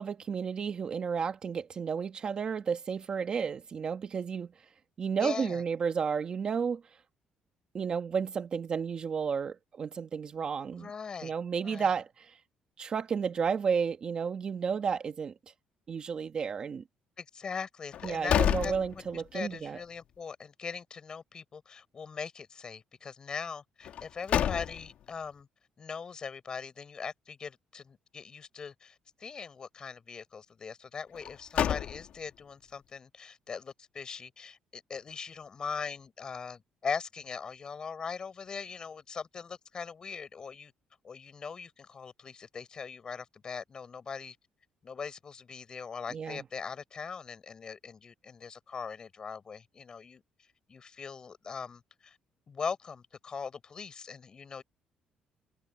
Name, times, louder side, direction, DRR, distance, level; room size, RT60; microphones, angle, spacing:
voice 1, 0.0-4.5 5.0-6.8 7.7-10.9 11.2-12.4 12.8-15.3 15.9-16.8 18.0-19.8 46.1-46.4, right 6 dB, 35° right, 1.3 m, -32 dB
voice 2, 5.1-5.6 10.7-11.3 11.6-11.9 17.2-18.7 19.1-25.5 25.8-40.7 41.0-44.4 44.8-50.2 50.7-52.2 52.5-54.6, left 5 dB, 30° left, 4.3 m, -40 dB
Door Slam, 17.9-19.5 19.9-20.0 23.8-25.1 31.1-32.4, left 10 dB, 60° left, 2.0 m, -30 dB
cardioid pair, 155°, 3 cm